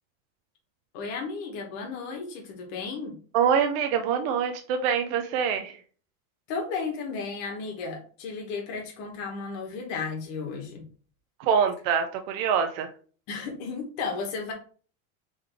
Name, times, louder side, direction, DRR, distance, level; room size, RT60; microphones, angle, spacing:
voice 1, 0.9-3.2 6.5-10.9 13.3-14.5, left 4 dB, 50° left, 1 dB, 1.2 m, -34 dB
voice 2, 3.3-5.8 11.4-12.9, right 7 dB, 50° right, 6 dB, 0.5 m, -25 dB
4.0 x 3.3 x 3.3 m, 0.41 s
cardioid pair, 175°, 39 cm